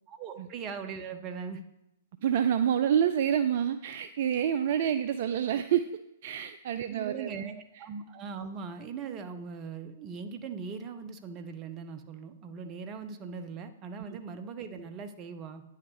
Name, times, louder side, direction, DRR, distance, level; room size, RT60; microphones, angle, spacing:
voice 1, 0.1-1.6 6.9-15.6, right 5 dB, 30° right, 9 dB, 0.8 m, -40 dB
voice 2, 2.2-5.9 6.2-7.8, right 9 dB, 50° right, 10 dB, 0.4 m, -28 dB
9.5 x 5.7 x 4.8 m, 0.87 s
figure-of-eight pair, 110°, 0 cm